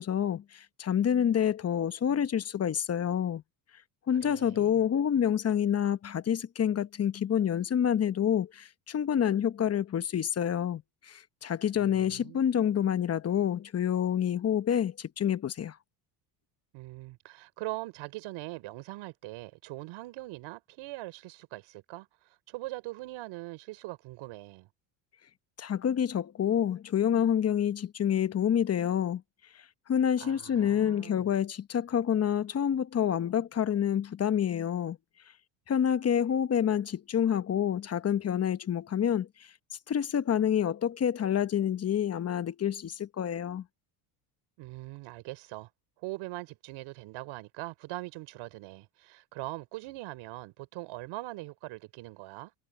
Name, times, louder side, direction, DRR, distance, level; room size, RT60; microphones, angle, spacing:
voice 1, 0.0-3.4 4.1-15.8 25.6-29.2 29.9-35.0 35.7-39.3 39.9-43.6, left 9 dB, 30° left, 0.9 m, -28 dB
voice 2, 4.2-4.8 11.7-12.7 16.7-24.7 30.2-31.3 44.6-45.7 46.0-52.5, right 19 dB, 70° right, 4.1 m, -42 dB
supercardioid pair, 100°, 49 cm